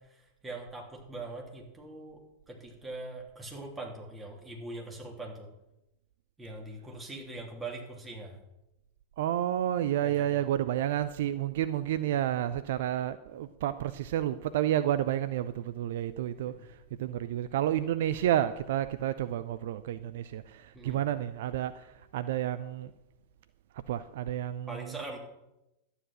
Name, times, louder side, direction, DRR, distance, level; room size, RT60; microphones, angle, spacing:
voice 1, 0.1-2.2 2.5-5.5 6.4-8.4 10.0-10.5 16.5-16.7 20.7-21.0 24.7-25.2, right 2 dB, 10° right, 0 dB, 3.3 m, -42 dB
voice 2, 9.2-16.6 17.0-21.7 22.1-22.9 23.9-24.9, right 12 dB, 55° right, 13 dB, 0.5 m, -30 dB
12.0 x 9.9 x 6.2 m, 0.91 s
figure-of-eight pair, 90°, 0 cm